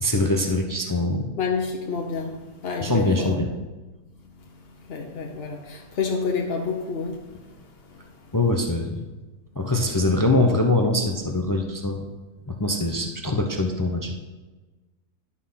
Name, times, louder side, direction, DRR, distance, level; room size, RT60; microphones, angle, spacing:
voice 1, 0.0-1.3 2.8-3.5 8.3-9.0 9.6-12.1 12.5-14.2, left 2 dB, 30° left, 3 dB, 0.4 m, -23 dB
voice 2, 1.4-3.4 4.9-7.3, left 5 dB, 50° left, 1 dB, 0.8 m, -28 dB
11.0 x 6.4 x 5.7 m, 1.2 s
omnidirectional pair, 1.7 m